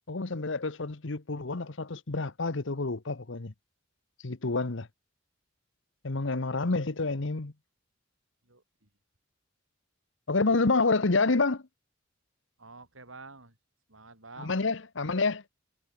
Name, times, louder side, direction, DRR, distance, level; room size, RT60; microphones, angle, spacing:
voice 1, 0.1-3.5 4.2-4.9 6.0-7.5 10.3-11.6 14.4-15.4, left 3 dB, 70° left, 1.1 m, -28 dB
voice 2, 8.4-8.9 12.6-13.6 13.9-14.6, right 3 dB, 80° right, 7.4 m, -49 dB
head